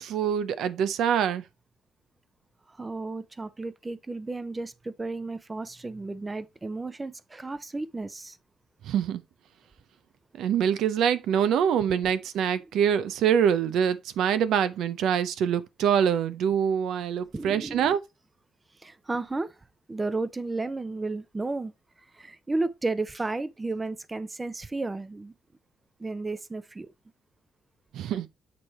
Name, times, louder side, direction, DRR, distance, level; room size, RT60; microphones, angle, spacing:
voice 1, 0.0-1.4 8.8-9.2 10.3-18.0 27.9-28.3, right 8 dB, 80° right, 0.6 m, -25 dB
voice 2, 2.8-8.4 17.3-18.0 18.8-19.5 19.9-21.7 22.1-25.3 26.0-26.9, right 3 dB, 20° right, 0.6 m, -33 dB
8.4 x 3.2 x 4.3 m
cardioid pair, 90°, 0 cm